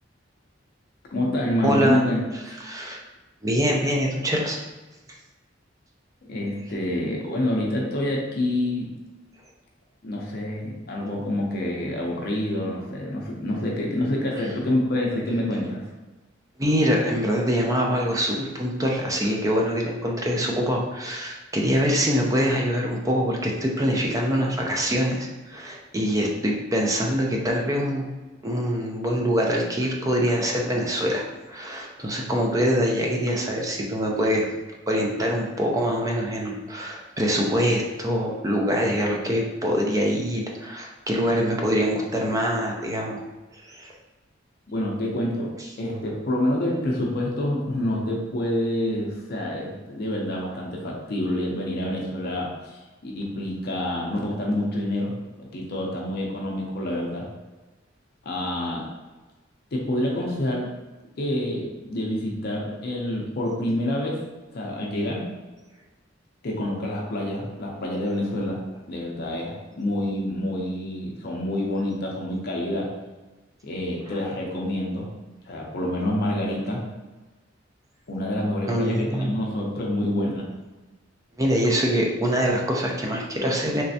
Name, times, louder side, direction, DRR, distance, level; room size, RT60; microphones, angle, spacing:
voice 1, 1.1-2.2 6.3-8.9 10.0-15.9 44.7-57.3 58.2-58.9 59.7-60.7 61.2-64.2 64.5-65.3 66.4-68.6 68.9-72.9 73.6-75.1 75.5-76.8 78.1-80.4, left 1 dB, 50° left, -2 dB, 0.5 m, -27 dB
voice 2, 1.6-2.0 2.6-3.0 3.4-4.6 16.6-28.0 28.4-34.5 34.9-43.2 43.5-43.9 78.7-79.3 81.4-83.8, equal, 15° right, -1 dB, 0.5 m, -24 dB
3.3 x 3.1 x 2.7 m, 1.2 s
head